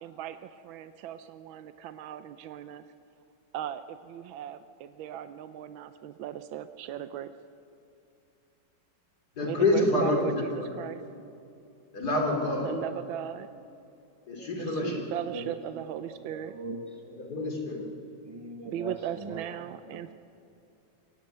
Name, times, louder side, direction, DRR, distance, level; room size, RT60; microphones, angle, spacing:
voice 1, 0.0-2.9 3.5-7.3 9.4-11.0 12.6-13.5 14.6-16.6 18.6-20.1, right 11 dB, 85° right, 11 dB, 1.5 m, -38 dB
voice 2, 9.4-10.7 11.9-12.7 14.3-15.0 17.2-17.8, left 2 dB, 55° left, 0 dB, 3.7 m, -27 dB
voice 3, 14.4-17.5 18.3-20.1, right 2 dB, 25° right, 3 dB, 0.8 m, -42 dB
23.0 x 16.5 x 9.3 m, 2.7 s
omnidirectional pair, 2.1 m